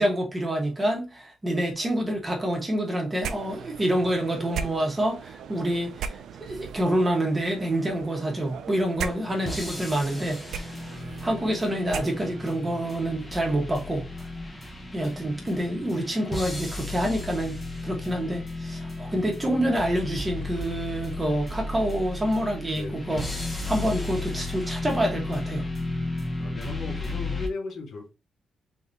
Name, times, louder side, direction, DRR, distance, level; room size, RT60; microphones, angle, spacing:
voice 1, 0.0-10.8 11.2-14.0 14.9-25.7, right 1 dB, 15° right, 1.2 m, -27 dB
sound 1, 3.2-12.6, right 7 dB, 80° right, 0.4 m, -38 dB
sound 2, 9.2-27.5, left 2 dB, 15° left, 1.0 m, -34 dB
voice 2, 26.4-28.1, left 3 dB, 65° left, 1.0 m, -36 dB
3.5 x 3.0 x 4.0 m
cardioid pair, 145°, 0 cm